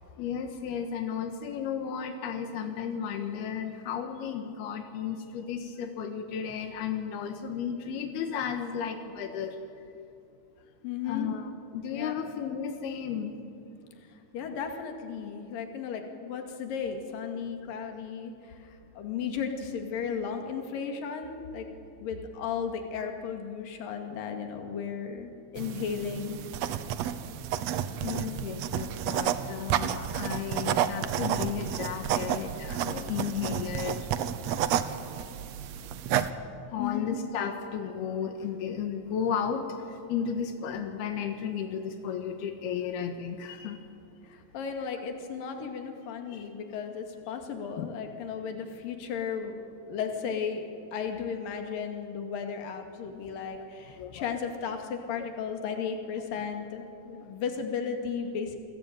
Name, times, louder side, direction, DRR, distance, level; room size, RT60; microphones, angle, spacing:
voice 1, 0.2-9.6 11.1-13.4 28.0-34.1 36.7-39.7 40.1-43.8 46.3-46.5 47.8-47.9 53.6-53.7 54.0-54.3 55.2-55.3, left 7 dB, 90° left, 6 dB, 3.4 m, -34 dB
voice 2, 10.8-11.3 11.9-12.2 14.0-21.7 22.0-26.5 36.8-37.2 44.2-49.6 49.9-58.6, left 6 dB, 65° left, 4 dB, 3.8 m, -35 dB
sound 1, 25.6-36.3, right 10 dB, 90° right, 1.5 m, -31 dB
28.5 x 20.5 x 9.2 m, 2.6 s
omnidirectional pair, 4.4 m